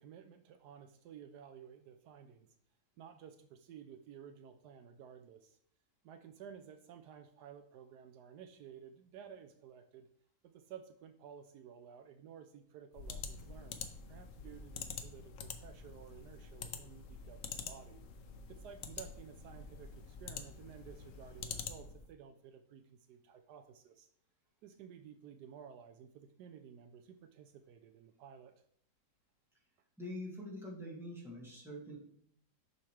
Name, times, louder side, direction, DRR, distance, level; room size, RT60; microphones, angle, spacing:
voice 1, 0.0-2.5 3.0-5.6 6.0-10.1 10.4-18.0 18.5-24.1 24.6-28.5, right 8 dB, 80° right, 8 dB, 1.1 m, -54 dB
sound 1, 12.9-22.1, left 5 dB, 60° left, 0.9 m, -46 dB
voice 2, 30.0-32.0, left 1 dB, ahead, -5 dB, 2.1 m, -45 dB
7.0 x 5.8 x 3.3 m, 0.63 s
omnidirectional pair, 1.8 m